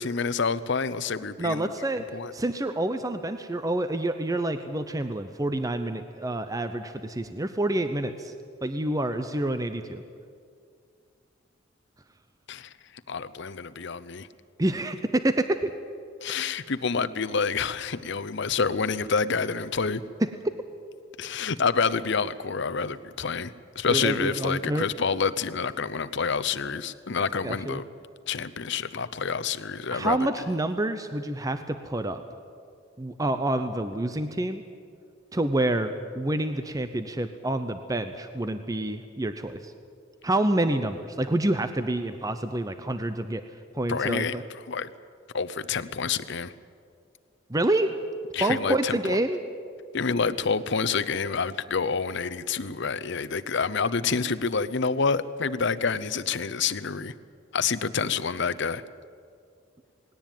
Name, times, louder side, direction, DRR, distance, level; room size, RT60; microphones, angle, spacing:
voice 1, 0.0-1.7 2.1-2.3 12.5-12.7 13.1-14.3 16.2-20.0 21.2-27.8 28.3-30.3 43.9-44.4 44.7-44.9 45.3-46.5 48.3-49.2 49.9-57.1 57.5-58.8, left 5 dB, 65° left, 12 dB, 0.8 m, -28 dB
voice 2, 1.4-2.0 2.3-8.3 8.6-10.0 14.6-15.7 20.2-20.3 23.9-24.9 27.4-27.8 29.9-32.2 33.0-34.6 35.3-39.7 40.2-43.4 43.7-44.4 47.5-47.9 48.4-49.4, right 1 dB, 20° right, 9 dB, 0.7 m, -27 dB
19.5 x 18.0 x 9.2 m, 2.3 s
head